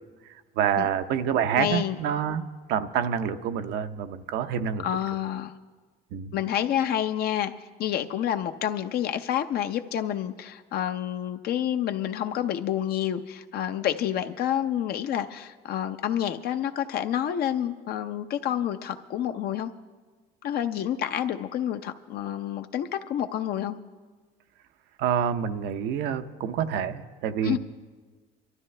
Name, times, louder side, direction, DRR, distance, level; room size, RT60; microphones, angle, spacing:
voice 1, 0.2-4.9 6.1-6.3 25.0-27.6, right 8 dB, 85° right, 9 dB, 0.7 m, -27 dB
voice 2, 1.5-1.9 4.8-5.6 6.3-7.5 7.8-19.7 20.4-23.8 27.4-27.6, left 10 dB, 65° left, 7 dB, 0.6 m, -28 dB
23.5 x 12.5 x 3.3 m, 1.4 s
cardioid pair, 110°, 17 cm